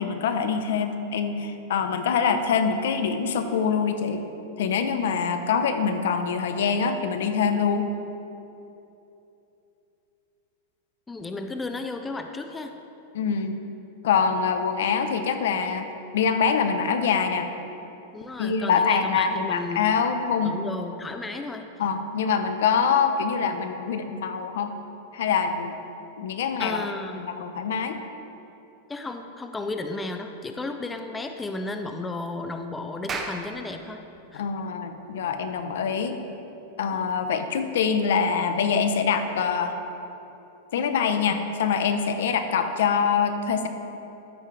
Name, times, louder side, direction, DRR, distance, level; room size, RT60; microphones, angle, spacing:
voice 1, 0.0-4.2 4.6-7.9 13.1-13.6 14.0-15.9 16.1-17.5 18.4-20.6 21.8-24.7 25.1-25.7 26.2-26.8 27.2-28.0 34.3-36.1 36.8-39.8 40.7-43.7, left 6 dB, 75° left, 8 dB, 0.9 m, -24 dB
voice 2, 11.1-12.7 18.1-19.8 20.4-21.7 26.6-27.3 28.9-34.0 34.3-34.4, left 2 dB, 10° left, 6 dB, 0.5 m, -33 dB
Clapping, 32.9-37.7, right 4 dB, 20° right, 0.9 m, -39 dB
13.5 x 8.7 x 3.4 m, 2.9 s
supercardioid pair, 145°, 0 cm